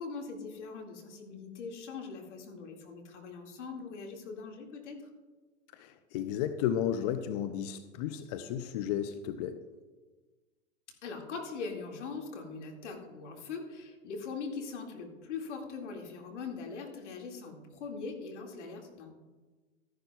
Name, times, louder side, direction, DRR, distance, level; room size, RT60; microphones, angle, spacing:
voice 1, 0.0-5.0 11.0-19.2, left 4 dB, 65° left, 2 dB, 2.2 m, -41 dB
voice 2, 5.7-9.6, left 10 dB, 35° left, 10 dB, 0.5 m, -33 dB
13.5 x 10.5 x 2.3 m, 1.3 s
hypercardioid pair, 115°, 38 cm